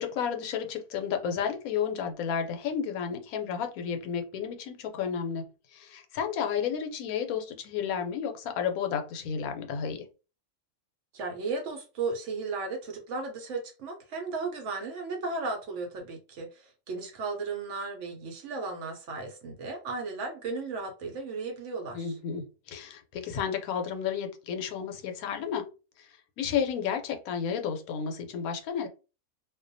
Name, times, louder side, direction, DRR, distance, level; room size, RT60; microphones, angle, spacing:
voice 1, 0.0-5.4 5.7-10.0 21.9-25.7 26.0-26.1 26.4-28.9, left 7 dB, 80° left, 1.0 m, -32 dB
voice 2, 11.1-22.1, right 3 dB, 65° right, 0.8 m, -35 dB
2.4 x 2.2 x 2.5 m
omnidirectional pair, 1.5 m